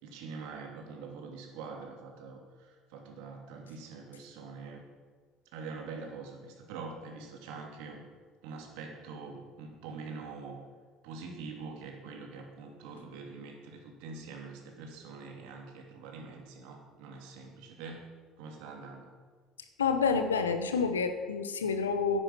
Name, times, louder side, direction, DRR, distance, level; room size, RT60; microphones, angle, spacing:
voice 1, 0.0-4.9 5.5-8.0 8.4-10.6 11.0-18.1 18.4-19.1, right 4 dB, 70° right, 2 dB, 2.8 m, -44 dB
voice 2, 19.8-22.2, left 5 dB, 90° left, 8 dB, 1.1 m, -28 dB
10.5 x 10.5 x 8.5 m, 1.5 s
hypercardioid pair, 65°, 0 cm